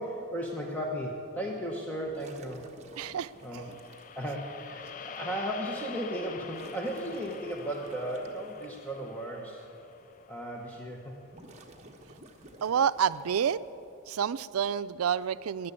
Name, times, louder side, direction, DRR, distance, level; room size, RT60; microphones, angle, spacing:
voice 1, 0.0-2.7 3.4-3.7 4.1-9.6 10.3-11.1, right 1 dB, 10° left, -1 dB, 1.0 m, -35 dB
sound 1, 2.0-4.1 5.2-5.3 6.4-8.7 11.1-13.7, right 2 dB, 30° right, 1.1 m, -53 dB
voice 2, 3.0-3.6 12.6-13.6 14.1-15.7, right 8 dB, 85° right, 16 dB, 0.4 m, -29 dB
sound 2, 3.3-11.7, left 7 dB, 40° left, 0.3 m, -46 dB
13.5 x 10.5 x 8.5 m, 2.7 s
head